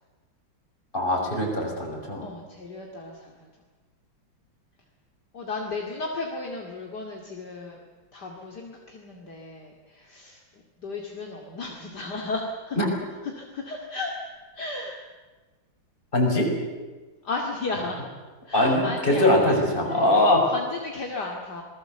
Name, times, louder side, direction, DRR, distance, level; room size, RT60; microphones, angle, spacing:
voice 1, 0.9-2.2 12.8-12.9 16.1-16.5 18.5-20.4, left 1 dB, 25° left, -1 dB, 6.5 m, -22 dB
voice 2, 2.2-3.5 5.3-7.8 8.1-10.4 10.8-12.8 13.2-14.1 14.5-15.0 17.2-18.0 18.4-19.6 19.9-21.6, left 3 dB, 55° left, 0 dB, 2.9 m, -34 dB
27.5 x 20.5 x 8.0 m, 1.3 s
omnidirectional pair, 2.2 m